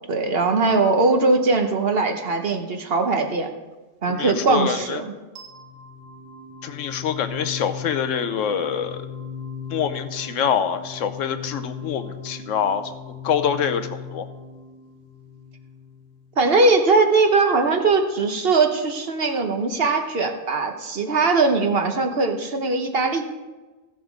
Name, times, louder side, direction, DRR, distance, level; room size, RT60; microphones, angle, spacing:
voice 1, 0.1-3.5 4.0-5.1 16.4-23.2, right 3 dB, 50° right, 5 dB, 1.1 m, -20 dB
voice 2, 4.2-5.0 6.6-9.0 9.7-12.8 13.2-14.2, left 8 dB, 75° left, 10 dB, 1.0 m, -25 dB
sound 1, 5.4-16.3, left 6 dB, 75° right, 1.8 m, -37 dB
14.5 x 7.1 x 5.1 m, 1.2 s
omnidirectional pair, 1.4 m